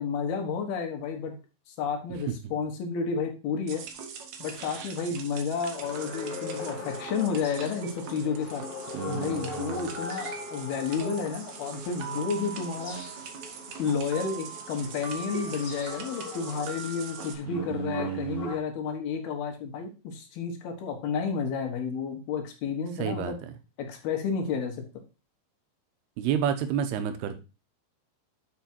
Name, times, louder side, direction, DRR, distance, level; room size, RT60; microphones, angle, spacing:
voice 1, 0.0-1.4 1.7-3.8 4.4-8.6 9.1-13.0 13.8-23.4 23.8-24.8, left 5 dB, 75° left, 4 dB, 3.3 m, -31 dB
sound 1, 3.7-17.4, right 6 dB, 65° right, 1.9 m, -41 dB
sound 2, 5.8-18.6, left 3 dB, 25° left, 1.3 m, -41 dB
voice 2, 8.9-9.9 17.5-18.5 23.0-23.5 26.2-27.4, right 9 dB, 85° right, 9 dB, 2.9 m, -31 dB
7.1 x 6.2 x 4.5 m, 0.31 s
omnidirectional pair, 4.5 m